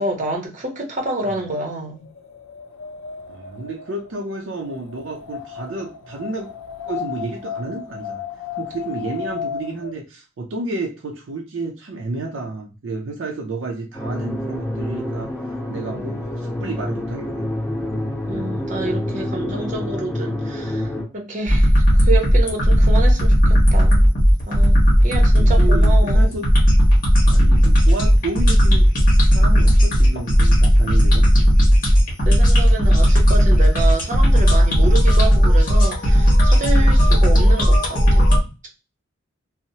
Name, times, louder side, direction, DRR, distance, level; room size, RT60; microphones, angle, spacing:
voice 1, 0.0-2.0 18.3-24.1 24.5-24.8 25.0-26.4 32.3-38.3, right 2 dB, 40° right, 0.7 m, -28 dB
Wind, 2.0-9.9, left 8 dB, 80° left, 0.4 m, -34 dB
voice 2, 3.3-6.5 6.9-8.2 8.6-15.3 15.7-17.5 25.1-26.4 27.2-28.9 29.2-31.3 36.3-36.6 37.0-37.4, right 3 dB, 65° right, 0.4 m, -31 dB
sound 1, 13.9-21.0, left 1 dB, 15° left, 0.9 m, -27 dB
sound 2, 21.5-38.4, equal, 45° left, 1.1 m, -14 dB
2.7 x 2.0 x 2.7 m
head